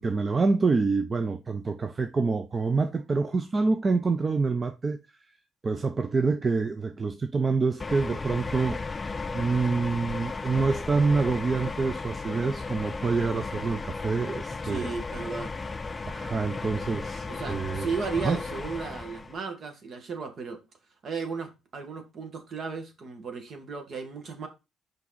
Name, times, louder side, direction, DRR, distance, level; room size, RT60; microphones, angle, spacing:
voice 1, 0.0-5.0 5.6-9.1 9.3-14.9 16.1-17.9 18.2-18.4, right 4 dB, 35° right, 0.6 m, -27 dB
sound 1, 7.8-19.4, left 3 dB, 25° left, 0.4 m, -35 dB
voice 2, 14.6-15.5 17.3-20.6 21.0-24.5, right 5 dB, 55° right, 1.8 m, -35 dB
5.9 x 5.2 x 4.0 m
cardioid pair, 90°, 0 cm